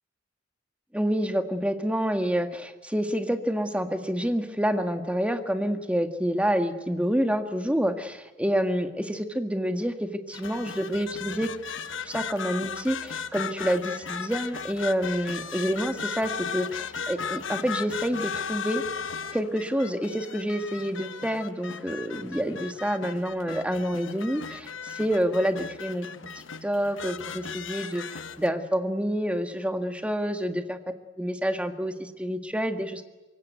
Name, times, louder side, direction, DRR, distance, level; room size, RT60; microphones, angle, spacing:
voice 1, 0.9-11.5 12.0-18.8 19.3-26.1 26.6-30.8 31.2-33.0, equal, 5° right, 7 dB, 1.8 m, -28 dB
sound 1, 10.3-28.5, left 6 dB, 85° left, 1.1 m, -36 dB
25.0 x 22.5 x 9.3 m, 1.2 s
head